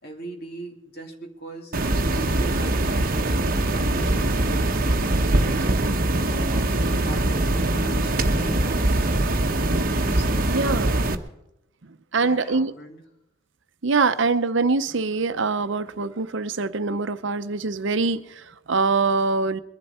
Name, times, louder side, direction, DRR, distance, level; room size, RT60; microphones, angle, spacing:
voice 1, 0.0-3.1 3.4-9.2 10.1-10.5 12.2-13.0, equal, 50° left, 2 dB, 2.6 m, -40 dB
sound 1, 1.7-11.1, right 1 dB, 45° right, 1.1 m, -22 dB
voice 2, 10.5-11.0 12.1-12.7 13.8-19.6, right 4 dB, 60° right, 11 dB, 0.7 m, -24 dB
22.5 x 11.5 x 4.3 m, 0.88 s
head